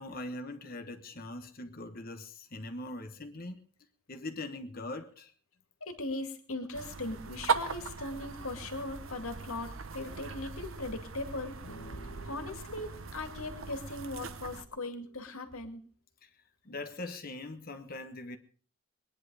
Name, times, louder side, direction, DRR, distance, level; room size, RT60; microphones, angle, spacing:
voice 1, 0.0-3.6 4.1-5.3 16.2-16.3 16.6-18.4, left 2 dB, 40° left, 1.2 m, -41 dB
voice 2, 5.8-11.6 12.2-15.8, left 2 dB, 75° left, 2.5 m, -39 dB
sound 1, 6.7-14.6, right 5 dB, 65° right, 1.1 m, -39 dB
sound 2, 11.6-15.2, right 2 dB, 60° left, 2.1 m, -53 dB
22.0 x 10.5 x 4.9 m
head